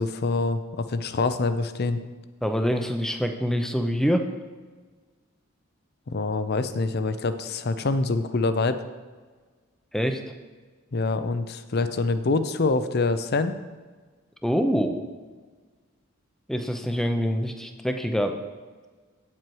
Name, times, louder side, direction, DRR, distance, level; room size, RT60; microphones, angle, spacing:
voice 1, 0.0-2.0 6.1-8.8 10.9-13.5, left 3 dB, 50° left, 11 dB, 0.5 m, -25 dB
voice 2, 2.4-4.3 9.9-10.2 14.4-15.0 16.5-18.4, equal, ahead, 6 dB, 0.6 m, -25 dB
9.0 x 7.7 x 4.6 m, 1.4 s
head